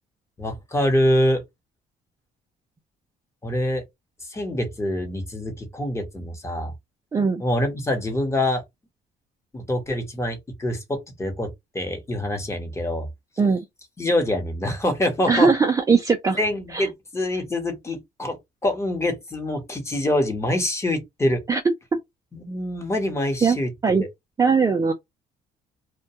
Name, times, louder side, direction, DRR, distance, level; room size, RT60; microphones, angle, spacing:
voice 1, 0.4-1.4 3.4-3.8 4.3-6.7 7.4-8.6 9.5-13.1 14.0-15.5 16.4-18.4 18.6-21.4 22.3-24.1, left 1 dB, 15° left, 0.9 m, -25 dB
voice 2, 7.1-7.4 13.4-13.6 15.3-16.4 16.7-16.9 21.5-21.6 23.4-23.6 23.8-24.0 24.4-24.9, right 5 dB, 20° right, 0.4 m, -19 dB
2.2 x 2.1 x 2.7 m
cardioid pair, 110°, 17 cm